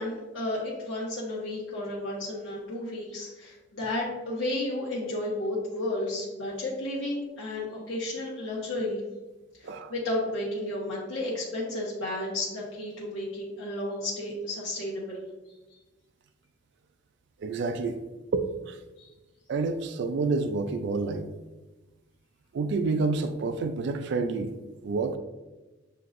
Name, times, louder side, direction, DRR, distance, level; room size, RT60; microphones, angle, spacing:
voice 1, 0.0-9.0 9.6-15.2 19.0-19.1, left 1 dB, 85° left, 1.1 m, -32 dB
voice 2, 17.4-18.0 18.3-18.8 19.5-21.3 22.5-24.5 24.8-25.2, right 3 dB, 65° right, 0.3 m, -28 dB
7.6 x 2.8 x 2.5 m
head